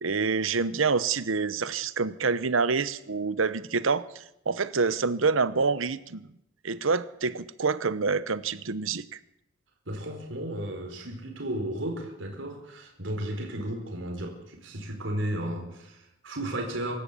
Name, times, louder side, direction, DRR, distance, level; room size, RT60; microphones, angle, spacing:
voice 1, 0.0-6.3 6.6-9.0, right 4 dB, 85° right, 16 dB, 1.0 m, -27 dB
voice 2, 9.9-17.0, right 1 dB, 70° right, 2 dB, 4.8 m, -34 dB
25.0 x 13.5 x 8.5 m, 0.84 s
head